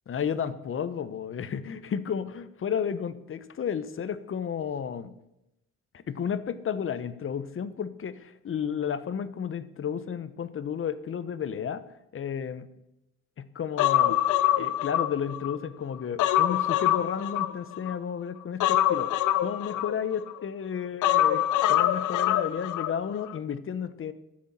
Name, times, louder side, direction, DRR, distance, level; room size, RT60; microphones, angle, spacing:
voice 1, 0.1-5.1 5.9-11.8 12.1-12.7 13.4-14.2 14.6-24.1, left 7 dB, 45° left, 14 dB, 0.8 m, -32 dB
Human voice, 13.8-15.6 15.9-18.0 18.6-20.4 21.0-22.9 23.2-23.4, left 12 dB, 80° left, 0.7 m, -25 dB
10.0 x 6.3 x 7.5 m, 0.87 s
cardioid pair, 90°, 30 cm